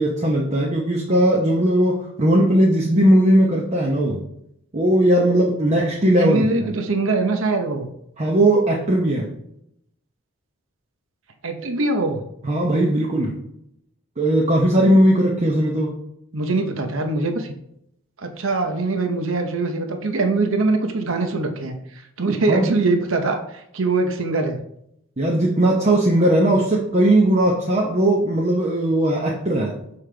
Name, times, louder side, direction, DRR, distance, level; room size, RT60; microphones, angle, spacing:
voice 1, 0.0-4.2 4.7-6.5 8.2-9.3 12.4-13.4 14.2-15.9 22.5-22.7 25.2-29.8, right 1 dB, 35° right, -3 dB, 0.9 m, -18 dB
voice 2, 6.2-7.9 11.4-12.2 16.3-17.5 18.2-24.6, right 3 dB, 65° right, 5 dB, 0.8 m, -22 dB
6.6 x 5.5 x 3.3 m, 0.76 s
head